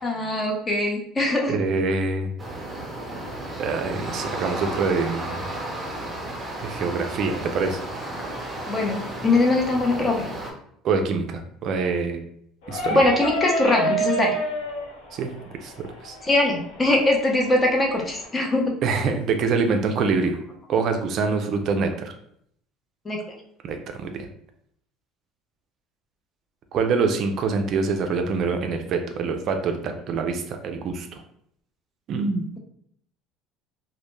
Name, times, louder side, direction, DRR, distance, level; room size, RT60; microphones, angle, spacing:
voice 1, 0.0-1.6 8.7-10.3 12.9-14.3 16.2-18.7 23.1-23.2, left 2 dB, 20° left, 0 dB, 0.6 m, -22 dB
voice 2, 1.5-2.3 3.6-5.4 6.6-7.8 10.8-12.2 12.7-13.0 15.1-15.3 15.6-15.7 16.0-16.2 18.8-20.3 20.7-22.1 23.6-24.1 26.7-31.1 32.1-32.5, right 4 dB, 55° right, 5 dB, 0.3 m, -25 dB
sound 1, 2.4-10.5, right 1 dB, 20° right, 0.6 m, -33 dB
sound 2, 12.6-18.3, right 1 dB, 85° left, 0.7 m, -30 dB
2.1 x 2.1 x 3.0 m, 0.68 s
supercardioid pair, 95°, 0 cm